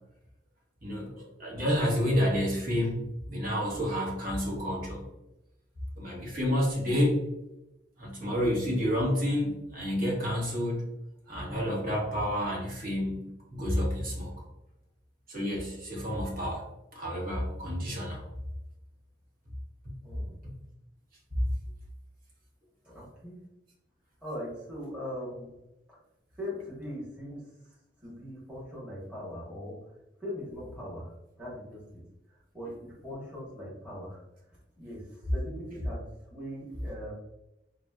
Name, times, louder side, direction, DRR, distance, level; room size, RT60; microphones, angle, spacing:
voice 1, 0.8-5.0 6.0-7.2 8.0-10.8 11.3-14.3 15.3-16.6 16.9-18.2 32.6-32.8, equal, 50° right, -2 dB, 0.9 m, -29 dB
voice 2, 20.0-20.3 22.8-23.4 24.2-25.5 26.4-27.4 28.0-29.7 30.2-31.1 31.4-31.8 32.5-34.2 34.8-35.0 35.3-36.1 36.3-37.1, left 1 dB, 5° right, -8 dB, 1.1 m, -40 dB
3.9 x 2.0 x 2.3 m, 0.91 s
head